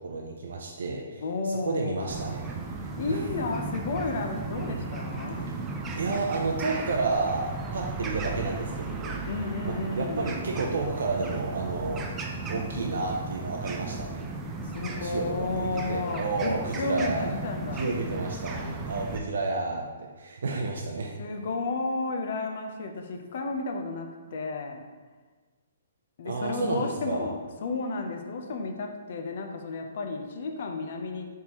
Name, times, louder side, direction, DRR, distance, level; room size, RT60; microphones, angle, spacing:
voice 1, 0.0-3.2 4.6-4.9 5.5-5.6 6.0-9.2 9.6-12.2 12.5-14.3 14.8-17.3 17.8-21.1 26.2-27.3, right 3 dB, 75° right, 0 dB, 0.5 m, -31 dB
voice 2, 1.2-2.1 3.0-5.5 9.2-10.4 14.7-17.9 21.2-24.8 26.2-31.3, left 3 dB, 50° left, 4 dB, 0.5 m, -32 dB
sound 1, 2.1-19.2, right 3 dB, 15° right, 0.3 m, -35 dB
4.4 x 3.5 x 2.9 m, 1.4 s
hypercardioid pair, 165°, 0 cm